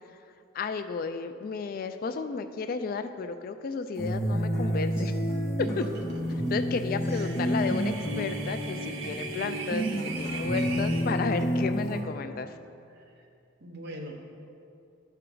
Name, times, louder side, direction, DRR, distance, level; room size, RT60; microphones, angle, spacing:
voice 1, 0.5-5.1 5.8-5.9 6.5-12.5, left 4 dB, 45° left, 9 dB, 0.3 m, -33 dB
sound 1, 4.0-12.0, equal, 15° left, 1.4 m, -29 dB
voice 2, 5.6-6.5 7.1-7.4 10.5-10.8 12.9-13.3 13.6-14.2, right 1 dB, 55° right, 1 dB, 1.0 m, -40 dB
sound 2, 6.8-11.1, right 5 dB, 75° right, 0.6 m, -41 dB
12.0 x 4.4 x 3.8 m, 2.6 s
head